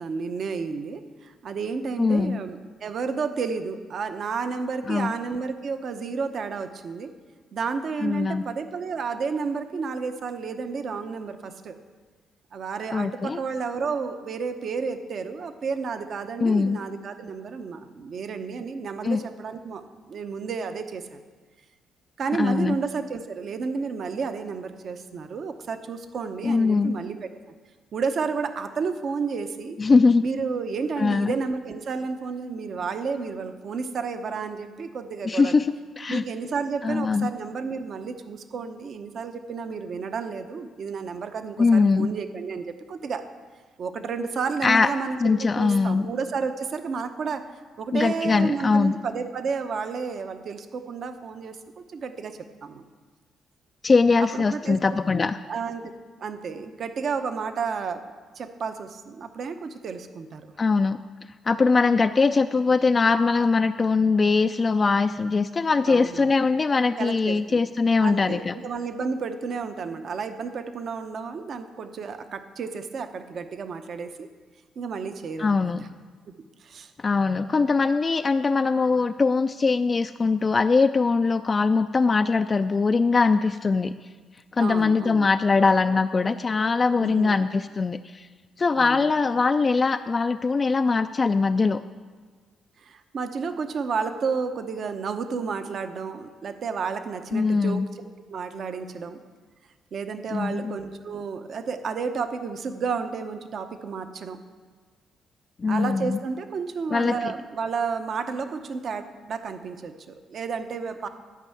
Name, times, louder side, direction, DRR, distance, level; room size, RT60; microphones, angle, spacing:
voice 1, 0.0-7.1 7.5-11.8 12.5-19.8 20.1-21.2 22.2-27.3 27.9-29.8 30.2-35.6 36.1-43.3 43.8-45.2 45.6-47.5 47.8-52.9 54.3-54.8 55.2-55.9 56.2-58.1 58.4-60.4 65.9-66.3 67.0-67.6 68.0-74.3 74.8-75.9 76.6-76.9 84.6-85.3 87.0-87.5 88.7-89.1 92.8-99.2 99.9-104.4 105.7-111.1, right 5 dB, 55° right, 8 dB, 0.8 m, -31 dB
voice 2, 2.0-2.4 4.9-5.1 8.0-8.4 12.9-13.4 16.4-16.8 19.0-19.2 22.4-22.8 26.4-26.9 29.8-30.2 31.0-31.3 35.3-36.2 36.8-37.3 41.6-42.1 44.6-44.9 45.2-46.1 47.9-49.0 53.8-55.4 60.6-61.0 61.5-68.6 75.4-75.8 77.0-83.9 84.5-88.3 88.6-91.8 97.3-97.9 100.3-100.8 105.6-106.2 106.9-107.1, left 4 dB, 35° left, 8 dB, 0.3 m, -22 dB
12.0 x 5.4 x 8.4 m, 1.5 s
cardioid pair, 90°, 0 cm